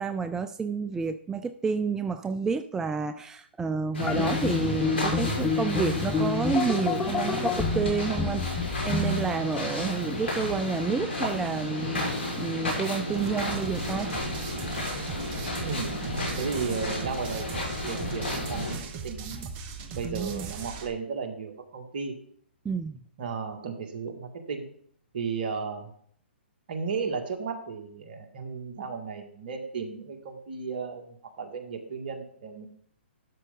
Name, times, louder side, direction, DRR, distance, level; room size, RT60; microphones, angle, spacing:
voice 1, 0.0-12.1 12.4-14.2 20.0-20.5 22.6-23.0, right 5 dB, 10° right, 9 dB, 0.4 m, -30 dB
sound 1, 3.9-18.7, left 1 dB, 80° left, 4.7 m, -32 dB
sound 2, 4.0-9.3, left 4 dB, 10° left, 1.0 m, -29 dB
sound 3, 13.1-20.9, right 5 dB, 30° right, 1.2 m, -39 dB
voice 2, 15.6-16.0 16.4-19.5 19.9-22.1 23.2-24.7 25.1-25.9 26.7-32.7, right 5 dB, 55° right, 3 dB, 2.0 m, -34 dB
12.0 x 6.5 x 3.8 m, 0.62 s
hypercardioid pair, 130°, 6 cm